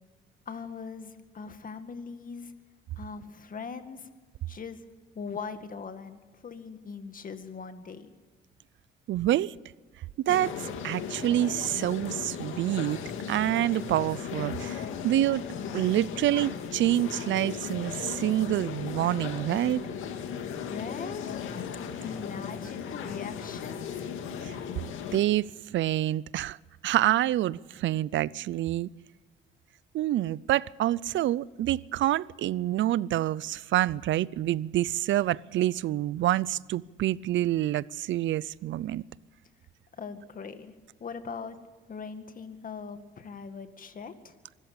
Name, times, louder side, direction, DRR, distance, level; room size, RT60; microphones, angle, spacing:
voice 1, 0.5-2.5 3.0-4.1 4.5-4.8 5.1-8.1 20.6-21.4 22.0-24.0 40.0-40.7 41.0-41.6 41.9-44.3, left 5 dB, 45° left, 2.0 m, -40 dB
voice 2, 9.1-9.5 10.3-10.6 10.8-13.0 13.3-15.4 15.7-19.8 24.5-24.6 25.1-25.5 25.7-26.6 26.8-28.9 29.9-39.0, right 13 dB, 70° right, 0.5 m, -27 dB
sound 1, 10.3-25.2, left 7 dB, 90° left, 2.2 m, -36 dB
24.5 x 14.0 x 8.7 m
cardioid pair, 90°, 20 cm